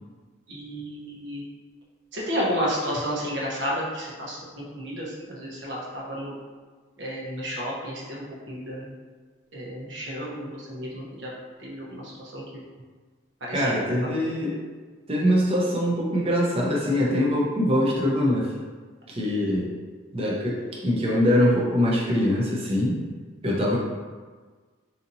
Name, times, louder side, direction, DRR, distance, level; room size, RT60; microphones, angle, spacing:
voice 1, 0.5-1.4 2.1-6.3 7.0-8.9 9.5-11.3 11.6-12.6 13.5-13.7, equal, 65° right, -5 dB, 0.9 m, -32 dB
voice 2, 13.5-14.6 15.1-18.5 19.1-19.7 20.1-23.0 23.4-23.8, equal, 30° right, -3 dB, 0.6 m, -23 dB
4.1 x 2.8 x 2.6 m, 1.4 s
head